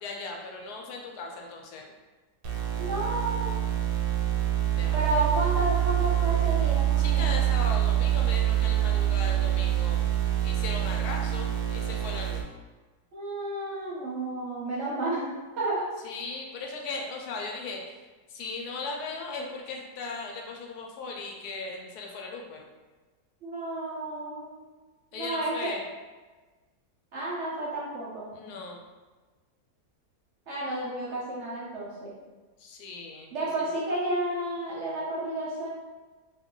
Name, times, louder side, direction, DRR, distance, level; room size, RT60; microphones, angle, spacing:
voice 1, 0.0-1.9 4.8-5.0 7.0-10.0 10.4-12.4 16.0-17.8 18.3-22.6 25.1-25.8 28.3-28.8 32.6-33.3, left 3 dB, 80° left, 0 dB, 1.1 m, -37 dB
sound 1, 2.4-12.4, right 12 dB, 90° right, 1.2 m, -26 dB
voice 2, 2.8-3.6 4.9-7.3 13.1-15.8 23.4-24.5 25.1-25.7 27.1-28.3 30.5-32.1 33.3-35.7, right 1 dB, 60° right, -6 dB, 0.8 m, -31 dB
2.5 x 2.3 x 3.6 m, 1.3 s
omnidirectional pair, 1.7 m